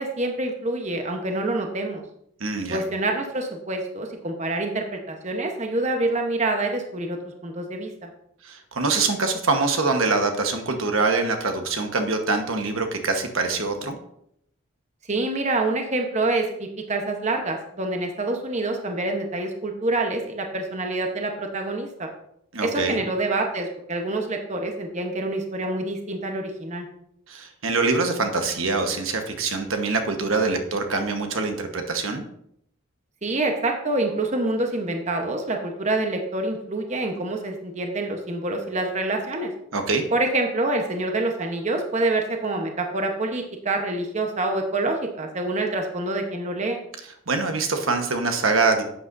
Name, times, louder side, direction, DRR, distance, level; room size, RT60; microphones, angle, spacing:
voice 1, 0.0-2.0 2.7-7.2 7.4-8.1 15.1-22.1 22.6-26.9 33.2-39.5 40.1-46.8, right 2 dB, 35° right, 3 dB, 1.0 m, -26 dB
voice 2, 2.4-2.8 8.4-14.0 22.5-23.0 27.3-32.2 39.7-40.0 47.3-48.8, right 3 dB, 80° right, 5 dB, 1.2 m, -24 dB
11.5 x 8.2 x 2.6 m, 0.72 s
head